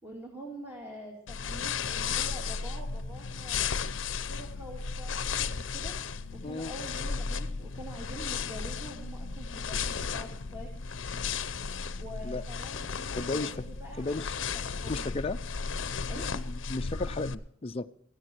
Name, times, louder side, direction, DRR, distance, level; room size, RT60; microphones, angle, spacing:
voice 1, 0.0-3.7 4.2-5.9 6.3-10.7 12.0-15.1 16.1-16.3, right 1 dB, 10° right, -1 dB, 2.4 m, -45 dB
sound 1, 1.3-17.3, left 5 dB, 70° left, 0.7 m, -34 dB
voice 2, 6.4-6.7 12.2-12.4 13.2-13.6 14.0-14.3 14.9-15.4 16.2-17.9, left 2 dB, 30° left, 8 dB, 0.5 m, -34 dB
16.0 x 15.0 x 4.5 m, 0.68 s
head